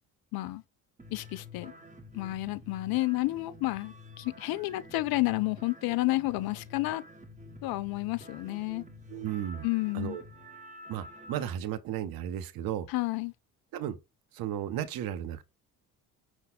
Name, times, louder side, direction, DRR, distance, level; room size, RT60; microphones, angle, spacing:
voice 1, 0.3-0.6 1.1-1.7 2.1-7.0 7.6-8.8 9.6-10.2 12.9-13.3, left 19 dB, 55° left, 0.5 m, -30 dB
sound 1, 1.0-11.5, left 2 dB, 15° right, 1.1 m, -49 dB
voice 2, 9.1-9.7 9.9-10.2 10.9-12.9 13.7-14.0 14.3-15.4, right 10 dB, 50° right, 0.7 m, -34 dB
5.3 x 2.2 x 4.0 m
hypercardioid pair, 55°, 45 cm